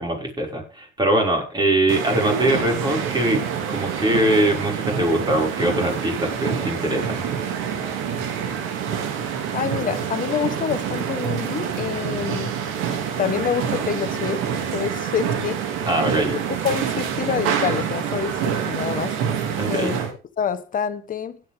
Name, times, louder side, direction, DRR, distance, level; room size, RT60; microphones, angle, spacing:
voice 1, 0.0-3.4 3.7-7.2 15.8-16.4 19.6-20.0, right 1 dB, 20° right, 5.9 m, -22 dB
sound 1, 1.9-20.1, right 8 dB, 80° right, 2.5 m, -26 dB
voice 2, 9.5-12.5 13.2-14.4 14.7-15.8 16.3-19.2 19.7-20.0 20.4-21.4, left 8 dB, 40° left, 1.4 m, -27 dB
16.5 x 8.9 x 3.7 m
cardioid pair, 105°, 20 cm